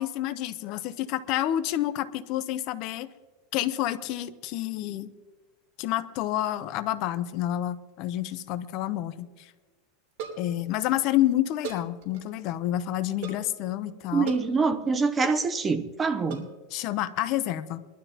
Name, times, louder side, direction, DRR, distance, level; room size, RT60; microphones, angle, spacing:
voice 1, 0.0-3.1 3.5-5.1 5.8-9.5 10.4-14.3 16.4-17.9, left 13 dB, 45° left, 0.7 m, -29 dB
sound 1, 7.9-8.4 8.7-8.8 9.0-9.1 10.1-10.6 11.6-12.4 13.2-13.5 14.3-14.5 15.2-15.4 16.3-16.6, right 5 dB, 60° right, 3.2 m, -39 dB
voice 2, 14.1-16.4, right 4 dB, 15° right, 0.6 m, -25 dB
22.5 x 12.0 x 2.9 m
supercardioid pair, 160°, 0 cm